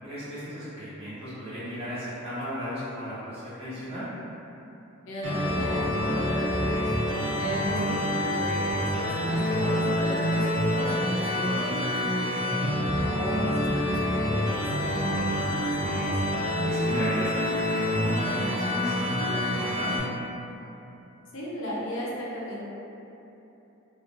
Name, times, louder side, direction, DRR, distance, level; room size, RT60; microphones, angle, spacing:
voice 1, 0.0-4.1 12.7-12.9 16.6-20.0, equal, 30° right, -13 dB, 1.2 m, -35 dB
voice 2, 5.1-6.9 7.4-12.6 13.1-16.1 21.3-22.6, left 1 dB, 65° left, -5 dB, 0.6 m, -36 dB
sound 1, 5.2-20.0, left 1 dB, 85° right, 1.3 m, -27 dB
3.0 x 2.4 x 2.5 m, 3.0 s
head